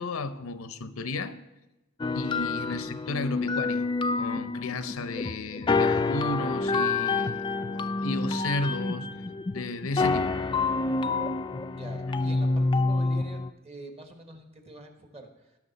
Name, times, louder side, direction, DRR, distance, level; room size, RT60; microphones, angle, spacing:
voice 1, 0.0-1.4 2.1-9.1 9.5-10.4, left 2 dB, 80° left, 0.7 m, -33 dB
sound 1, 2.0-13.5, left 3 dB, 20° left, 0.4 m, -28 dB
voice 2, 11.8-15.6, right 1 dB, 30° right, 1.3 m, -45 dB
18.0 x 6.2 x 4.1 m
head